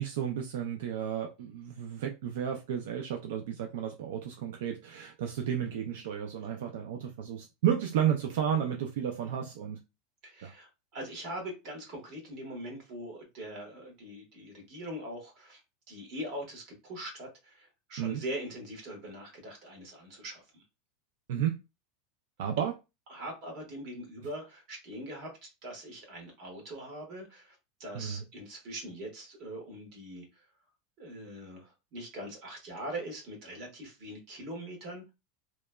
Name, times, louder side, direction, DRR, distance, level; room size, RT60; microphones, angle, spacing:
voice 1, 0.0-9.8 10.4-10.5 18.0-18.2 21.3-21.6 22.4-22.7 27.9-28.2, right 9 dB, 70° right, 0.4 m, -32 dB
voice 2, 10.2-15.6 15.9-20.6 23.1-30.2 31.0-35.1, right 1 dB, 40° right, 1.3 m, -42 dB
2.9 x 2.1 x 2.2 m
supercardioid pair, 170°, 0 cm